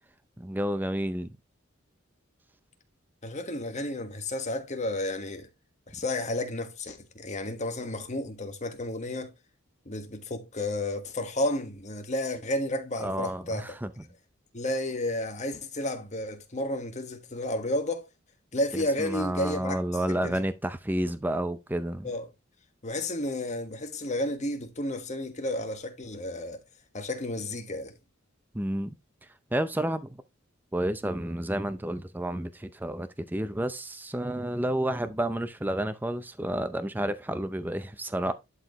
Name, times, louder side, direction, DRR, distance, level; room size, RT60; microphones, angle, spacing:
voice 1, 0.4-1.3 13.0-13.9 18.7-22.1 28.5-28.9 29.5-30.2 30.7-38.3, right 1 dB, 10° right, 0.5 m, -30 dB
voice 2, 3.2-5.5 5.9-9.3 9.8-13.7 14.5-18.1 18.5-19.8 20.1-20.4 22.0-22.3 22.8-26.6 26.9-27.9, left 1 dB, 35° left, 1.5 m, -32 dB
11.0 x 4.7 x 3.0 m
head